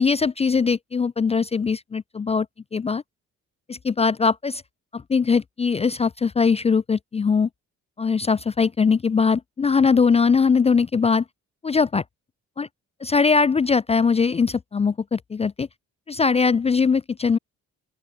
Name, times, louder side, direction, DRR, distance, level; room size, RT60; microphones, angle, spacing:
voice 1, 0.0-2.5 2.7-3.0 3.7-4.6 4.9-7.5 8.0-11.2 11.6-12.0 12.6-12.7 13.0-15.7 16.1-17.4, left 5 dB, 20° left, 0.4 m, -21 dB
open air
cardioid pair, 90°, 30 cm